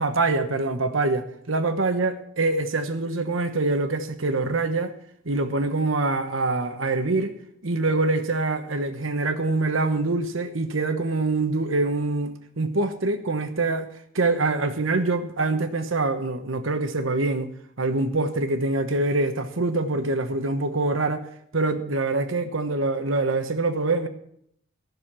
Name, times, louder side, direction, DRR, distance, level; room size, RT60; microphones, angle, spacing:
voice 1, 0.0-4.9 5.2-7.3 7.6-13.9 14.1-21.3 21.5-24.1, right 3 dB, 80° right, 1.2 m, -25 dB
15.0 x 6.6 x 7.3 m
head